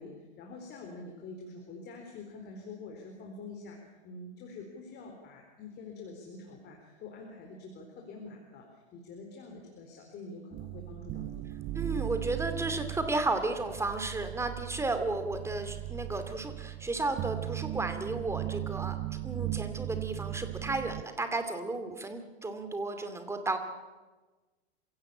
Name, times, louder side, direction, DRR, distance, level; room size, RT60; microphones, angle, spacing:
voice 1, 0.0-3.8 4.0-11.4, left 3 dB, 30° left, 2 dB, 4.3 m, -46 dB
sound 1, 10.5-21.0, right 15 dB, 25° right, 0.8 m, -37 dB
voice 2, 11.7-23.6, right 2 dB, 10° right, 8 dB, 2.5 m, -33 dB
27.0 x 17.0 x 8.6 m, 1.3 s
hypercardioid pair, 125°, 33 cm